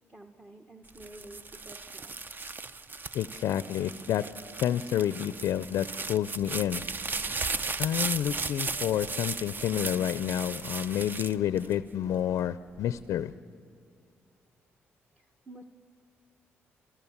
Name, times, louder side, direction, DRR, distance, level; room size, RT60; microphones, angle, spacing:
voice 1, 0.1-2.1 15.2-15.6, right 1 dB, 20° right, 4 dB, 1.2 m, -50 dB
sound 1, 0.9-12.2 12.8-13.3, right 4 dB, 40° right, 0.7 m, -36 dB
sound 2, 2.9-12.1, left 1 dB, 80° right, 3.8 m, -59 dB
voice 2, 3.1-4.2 4.6-6.8 7.8-13.3, left 10 dB, 75° left, 15 dB, 0.4 m, -29 dB
28.0 x 15.0 x 7.2 m, 2.4 s
supercardioid pair, 65°, 5 cm